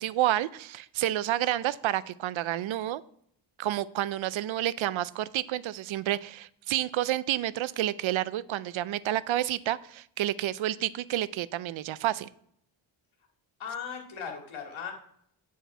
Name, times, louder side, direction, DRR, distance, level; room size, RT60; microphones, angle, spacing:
voice 1, 0.0-3.0 3.6-12.3, right 13 dB, 75° right, 18 dB, 0.5 m, -29 dB
voice 2, 13.6-14.9, left 7 dB, 85° left, 1 dB, 2.2 m, -37 dB
10.0 x 4.7 x 5.6 m, 0.69 s
cardioid pair, 95°, 47 cm